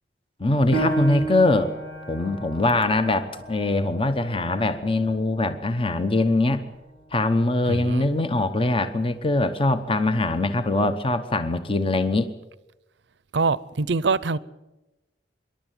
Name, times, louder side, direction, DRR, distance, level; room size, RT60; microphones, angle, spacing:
voice 1, 0.4-1.7 2.1-6.7 7.1-12.3, left 2 dB, 30° left, 1.0 m, -22 dB
Piano, 0.7-5.9 6.4-6.5 7.1-7.6, right 2 dB, 75° left, 4.5 m, -32 dB
voice 2, 7.7-8.0 13.3-14.4, right 4 dB, 75° right, 0.7 m, -24 dB
25.0 x 11.5 x 9.1 m
head